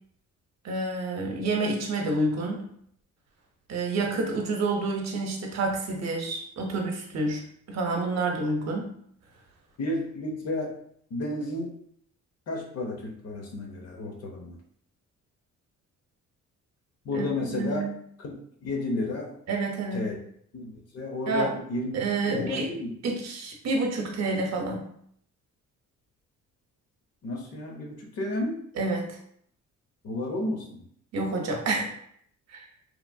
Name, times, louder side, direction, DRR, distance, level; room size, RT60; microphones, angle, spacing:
voice 1, 0.6-2.6 3.7-7.4 7.7-8.9 17.1-17.3 17.5-17.9 19.5-20.1 21.3-21.5 21.9-22.7 23.0-24.9 28.8-29.1 31.1-31.9 32.5-32.6, right 3 dB, 60° right, 1 dB, 0.7 m, -28 dB
voice 2, 9.8-10.7 11.1-11.7 12.5-14.6 17.0-17.8 18.2-19.4 19.9-20.1 20.5-22.0 22.2-22.9 27.2-28.6 30.0-30.9, left 2 dB, 55° left, 1 dB, 0.8 m, -32 dB
3.0 x 2.4 x 2.3 m, 0.66 s
cardioid pair, 90°, 30 cm